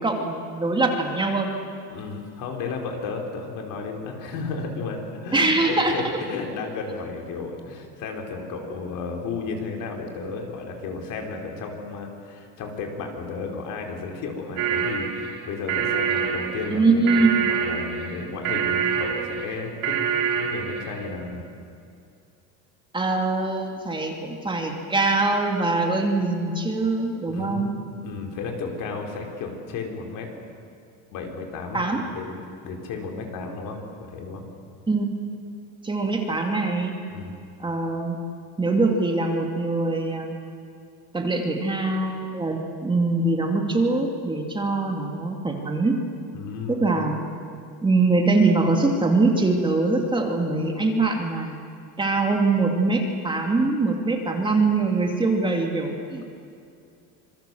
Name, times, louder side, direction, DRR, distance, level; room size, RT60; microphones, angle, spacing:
voice 1, 0.0-1.5 5.3-5.9 16.7-17.5 22.9-27.7 31.7-32.0 34.9-35.2 35.8-36.9 37.6-38.2 38.6-40.4 41.1-46.0 46.7-47.2 47.8-51.6 52.0-56.2, right 3 dB, 10° right, 2 dB, 2.4 m, -23 dB
voice 2, 1.9-20.0 20.3-21.4 27.3-27.7 28.0-30.3 31.1-34.4 37.1-37.4 46.3-46.8, left 4 dB, 55° left, 2 dB, 4.7 m, -33 dB
sound 1, 14.6-21.0, right 7 dB, 65° right, 3.6 m, -26 dB
26.5 x 22.5 x 7.8 m, 2.4 s
cardioid pair, 140°, 38 cm